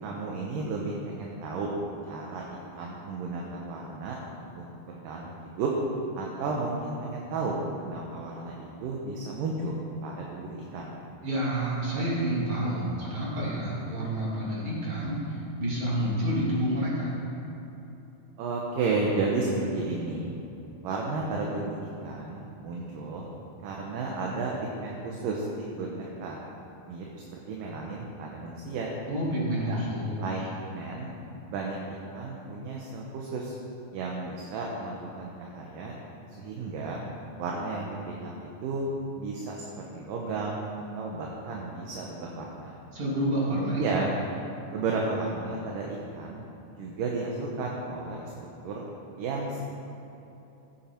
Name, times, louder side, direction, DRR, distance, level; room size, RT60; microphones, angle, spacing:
voice 1, 0.0-1.7 2.1-4.2 4.6-4.7 5.0-5.7 6.2-10.9 18.4-20.3 20.8-23.3 23.6-24.5 24.8-26.4 26.9-28.9 29.7-29.8 30.2-30.5 30.7-31.1 31.5-33.5 33.9-35.9 36.4-37.0 37.4-38.9 39.2-40.7 41.0-42.8 43.5-44.2 44.7-46.4 46.8-48.2 48.6-48.8 49.2-49.6, right 3 dB, 70° right, -2 dB, 2.5 m, -33 dB
voice 2, 11.2-17.1 29.1-30.2 42.9-43.9, right 1 dB, 40° right, -6 dB, 3.3 m, -29 dB
14.5 x 9.3 x 4.5 m, 3.0 s
omnidirectional pair, 4.2 m